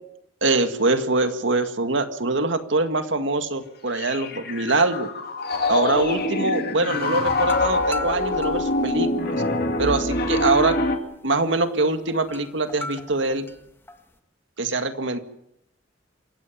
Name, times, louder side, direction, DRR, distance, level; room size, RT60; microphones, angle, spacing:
voice 1, 0.4-5.1 5.7-9.3 9.8-10.8 11.2-13.5 14.6-15.2, right 2 dB, 70° right, 8 dB, 2.0 m, -23 dB
Piano, 4.0-11.0, left 2 dB, 55° left, 2.5 m, -25 dB
sound 1, 6.9-14.2, left 2 dB, 10° left, 1.7 m, -40 dB
27.5 x 16.5 x 7.4 m, 0.79 s
head